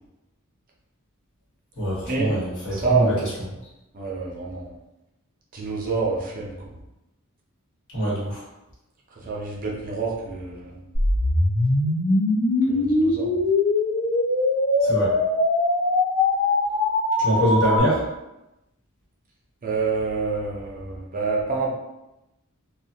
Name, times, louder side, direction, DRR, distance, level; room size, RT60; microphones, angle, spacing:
voice 1, 1.8-3.3 7.9-8.4 14.8-15.2 17.2-18.0, equal, 60° left, -7 dB, 1.1 m, -23 dB
voice 2, 2.7-3.1 3.9-4.7 5.5-6.5 9.3-10.8 12.7-13.4 19.6-21.7, right 4 dB, 40° right, -3 dB, 0.5 m, -27 dB
sound 1, 10.9-17.8, left 2 dB, 80° left, 0.6 m, -21 dB
2.5 x 2.1 x 2.6 m, 0.93 s
head